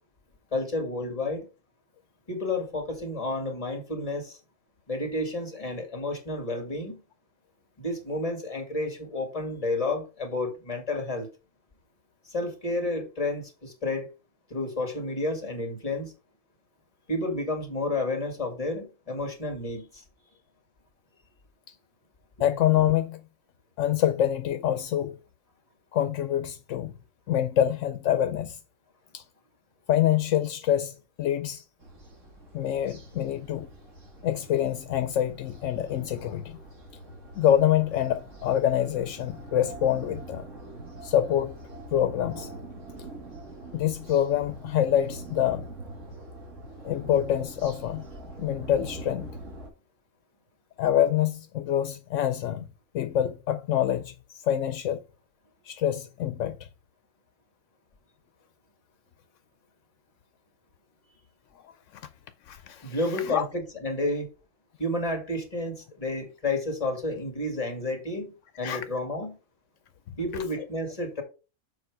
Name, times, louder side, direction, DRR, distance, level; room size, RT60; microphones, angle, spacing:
voice 1, 0.5-1.5 2.3-4.4 4.9-7.0 7.8-11.3 12.3-14.1 14.5-16.1 17.1-20.0 62.8-64.3 64.8-68.3 68.6-69.4 70.2-71.2, left 2 dB, 30° left, 2.1 m, -31 dB
voice 2, 22.4-23.2 23.8-25.2 25.9-26.9 27.3-28.6 29.1-29.2 29.9-31.6 32.5-33.7 34.2-36.6 37.4-40.4 41.0-41.6 41.9-42.5 43.7-45.6 46.8-48.1 48.4-49.3 50.8-52.7 52.9-55.0 55.7-56.7 61.6-61.7 62.5-63.0 63.2-63.4 68.6-68.8, left 11 dB, 80° left, 0.9 m, -26 dB
sound 1, 31.8-49.7, right 2 dB, 80° right, 2.4 m, -44 dB
7.1 x 4.9 x 4.6 m
omnidirectional pair, 1.3 m